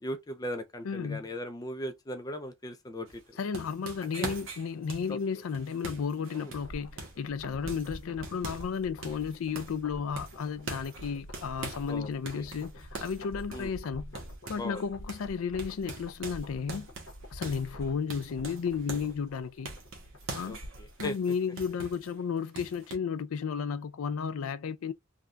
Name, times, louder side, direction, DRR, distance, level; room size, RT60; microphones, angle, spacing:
voice 1, 0.0-3.2 4.2-4.3 5.1-5.2 6.3-6.5 11.9-12.1 12.4-12.5 13.5-13.7 14.6-14.8 20.5-21.2, left 1 dB, 20° left, 0.4 m, -38 dB
voice 2, 0.8-1.3 3.4-14.1 14.5-16.9 17.3-19.7 20.3-20.6 21.0-24.9, left 6 dB, 85° left, 0.4 m, -33 dB
sound 1, 3.1-7.3 7.7-8.8 9.0-9.8 10.2-11.9 12.3-14.8 15.1-15.3 15.6-19.2 19.7-22.1 22.6-23.0, right 3 dB, 70° right, 1.1 m, -43 dB
sound 2, 6.3-21.0 21.3-21.4, equal, 70° left, 1.0 m, -47 dB
3.5 x 2.2 x 2.5 m
head